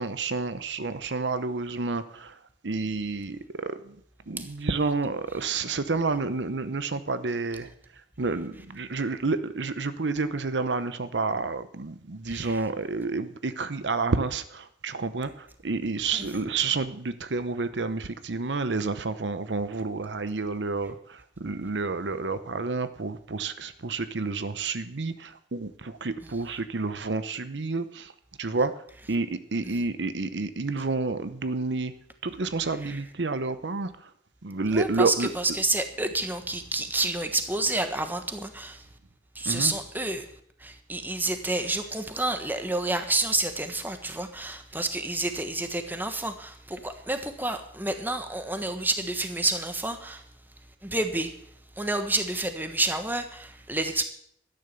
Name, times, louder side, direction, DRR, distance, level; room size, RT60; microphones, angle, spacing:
voice 1, 0.0-4.0 4.3-7.7 8.2-28.1 28.4-28.8 29.1-31.9 32.2-34.1 34.4-35.3 39.4-39.7, right 3 dB, 85° right, 12 dB, 0.8 m, -29 dB
voice 2, 12.3-12.6 16.1-16.4 32.8-33.0 34.7-38.8 39.3-40.3 40.6-50.2 50.8-51.3 51.8-54.0, right 2 dB, 10° right, 7 dB, 1.3 m, -29 dB
12.5 x 10.0 x 6.9 m, 0.65 s
head